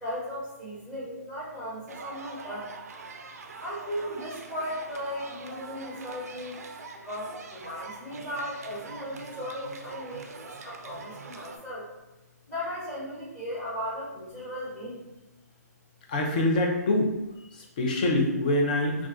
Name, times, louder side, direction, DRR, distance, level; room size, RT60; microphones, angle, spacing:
voice 1, 0.0-2.7 3.6-6.6 6.9-11.8 12.5-15.0, equal, 10° left, -10 dB, 1.1 m, -36 dB
sound 1, 1.9-11.6, right 4 dB, 60° right, 0.4 m, -44 dB
voice 2, 16.1-17.2 17.5-19.1, left 1 dB, 30° left, 1 dB, 0.4 m, -25 dB
2.4 x 2.3 x 3.6 m, 1.0 s
hypercardioid pair, 165°, 9 cm